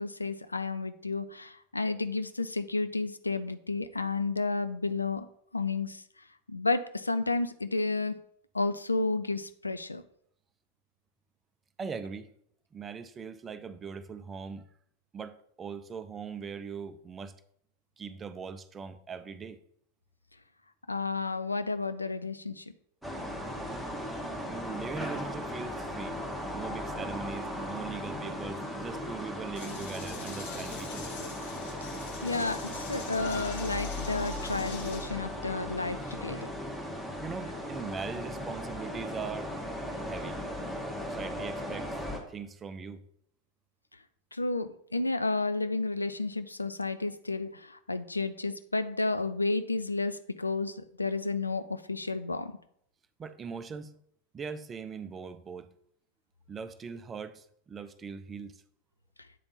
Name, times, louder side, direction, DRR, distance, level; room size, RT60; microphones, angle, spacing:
voice 1, 0.0-5.3 5.5-6.0 6.5-8.2 8.5-10.0 20.9-22.6 32.2-36.5 44.3-52.5, left 3 dB, 80° left, 0.4 m, -31 dB
voice 2, 11.8-12.3 12.7-14.7 15.1-17.4 18.0-19.6 24.5-26.2 26.5-31.2 37.2-39.5 40.0-40.4 41.0-42.0 42.3-43.0 53.2-53.9 54.3-55.7 56.5-58.6, right 5 dB, 20° right, 0.5 m, -40 dB
sound 1, 23.0-42.2, left 1 dB, ahead, 1.2 m, -37 dB
sound 2, 29.5-36.5, left 5 dB, 50° left, 1.0 m, -44 dB
8.3 x 3.4 x 4.1 m
figure-of-eight pair, 90°, 0 cm